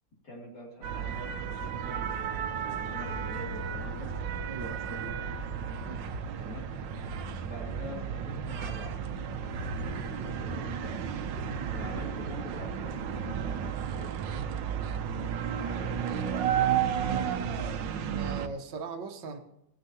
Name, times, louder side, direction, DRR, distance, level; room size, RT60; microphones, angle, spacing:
voice 1, 0.2-4.1 4.6-5.1 6.4-6.6 7.4-8.9 9.4-11.0 11.7-14.1 15.4-16.9, left 1 dB, 65° left, -4 dB, 3.4 m, -45 dB
sound 1, 0.8-18.5, right 7 dB, 90° right, 1.5 m, -33 dB
voice 2, 4.5-4.8 5.8-6.1 11.5-11.7 18.0-19.4, right 4 dB, 70° right, 7 dB, 1.6 m, -39 dB
16.0 x 9.7 x 2.9 m, 0.86 s
omnidirectional pair, 2.0 m